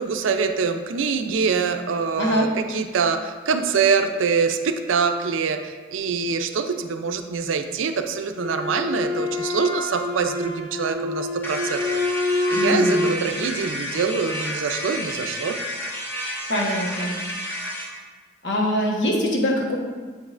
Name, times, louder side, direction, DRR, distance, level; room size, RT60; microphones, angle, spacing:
voice 1, 0.0-11.8 12.2-15.6, right 5 dB, 85° right, 7 dB, 0.4 m, -24 dB
voice 2, 2.1-2.5 12.5-13.1 16.5-17.1 18.4-19.8, equal, 60° left, -2 dB, 1.1 m, -23 dB
Wind instrument woodwind instrument, 8.3-13.3, left 2 dB, 40° left, 1.1 m, -26 dB
sound 1, 11.4-17.9, equal, 10° left, 0.7 m, -31 dB
7.9 x 5.3 x 2.5 m, 1.4 s
head